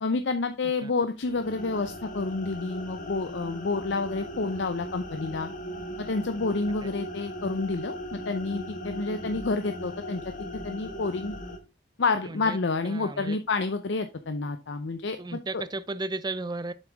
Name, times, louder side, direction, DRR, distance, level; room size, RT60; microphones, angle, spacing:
voice 1, 0.0-5.5 6.0-10.2 10.6-11.3 12.0-15.6, left 3 dB, 65° left, 0.6 m, -29 dB
sound 1, 1.2-11.6, equal, 45° left, 1.3 m, -38 dB
voice 2, 12.2-12.6 12.8-13.4 15.2-16.7, right 2 dB, 25° right, 0.5 m, -34 dB
7.5 x 6.1 x 3.4 m
head